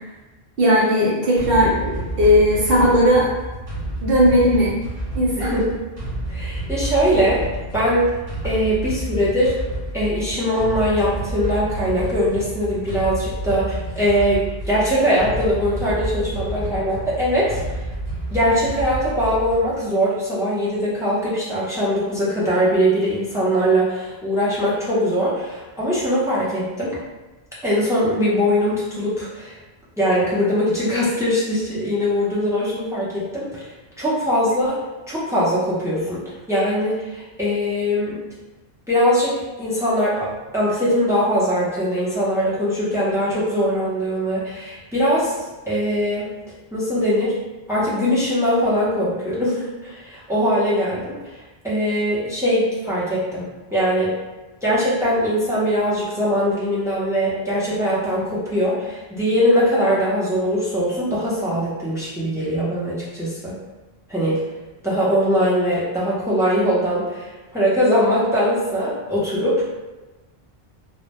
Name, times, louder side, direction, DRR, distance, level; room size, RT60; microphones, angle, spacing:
voice 1, 0.6-3.3 4.0-4.7 5.1-5.5, equal, 65° right, -5 dB, 0.8 m, -17 dB
sound 1, 1.4-19.8, right 1 dB, 40° right, 0.9 m, -30 dB
voice 2, 5.4-5.7 6.3-7.4 7.7-8.1 8.4-9.5 9.9-17.6 18.3-27.0 27.6-29.6 30.0-33.6 34.0-34.8 35.1-36.2 36.5-38.2 38.9-45.3 45.7-46.3 46.7-47.3 47.7-51.2 51.6-54.1 54.6-63.6 64.1-64.4 64.8-67.3 67.5-69.6, equal, 5° right, -9 dB, 0.4 m, -21 dB
2.1 x 2.1 x 2.8 m, 1.1 s
omnidirectional pair, 1.1 m